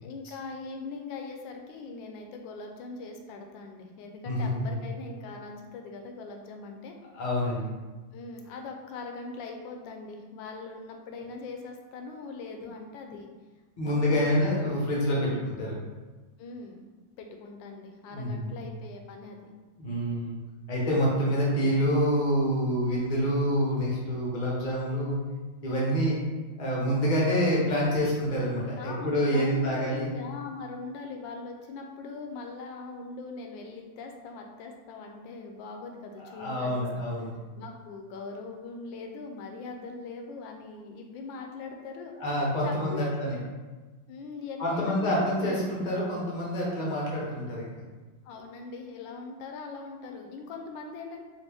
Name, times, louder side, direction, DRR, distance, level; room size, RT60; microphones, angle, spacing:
voice 1, 0.0-7.0 8.1-13.3 13.8-14.5 15.2-15.4 16.4-16.8 17.2-19.4 28.8-37.0 37.6-42.1 42.6-43.2 44.1-45.9 48.2-51.2, left 4 dB, 80° left, 3 dB, 1.3 m, -41 dB
voice 2, 4.3-4.7 7.1-7.7 13.8-15.7 18.1-18.5 19.8-20.4 20.7-25.2 25.6-26.2 26.6-30.1 36.3-37.3 42.2-43.4 44.6-47.7, equal, 45° left, -4 dB, 0.5 m, -27 dB
4.2 x 2.5 x 3.4 m, 1.3 s
omnidirectional pair, 2.1 m